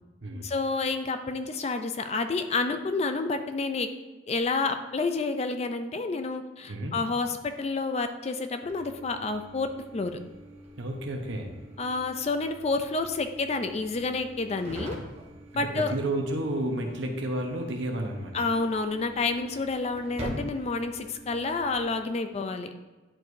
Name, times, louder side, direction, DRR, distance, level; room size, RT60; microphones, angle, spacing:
voice 1, 0.4-3.9 4.3-10.2 11.8-15.0 15.5-15.9 18.3-22.7, left 3 dB, 30° left, 8 dB, 0.4 m, -29 dB
voice 2, 6.7-7.0 10.8-11.5 15.5-18.4, right 1 dB, 65° right, 2 dB, 1.0 m, -31 dB
sound 1, 8.7-21.9, equal, 30° right, 1.1 m, -45 dB
10.5 x 4.7 x 2.7 m, 1.2 s
head